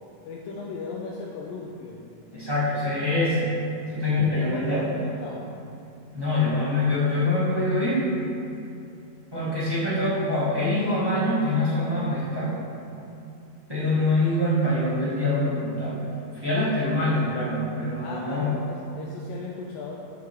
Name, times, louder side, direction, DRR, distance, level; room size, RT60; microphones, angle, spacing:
voice 1, 0.2-2.0 4.1-5.5 16.6-16.9 18.0-19.9, left 4 dB, 85° left, -3 dB, 2.5 m, -37 dB
voice 2, 2.3-3.5 3.9-4.8 6.1-8.0 9.3-12.5 13.7-16.0 16.3-18.5, left 2 dB, 10° right, -9 dB, 1.2 m, -24 dB
12.5 x 6.4 x 3.6 m, 2.7 s
omnidirectional pair, 4.0 m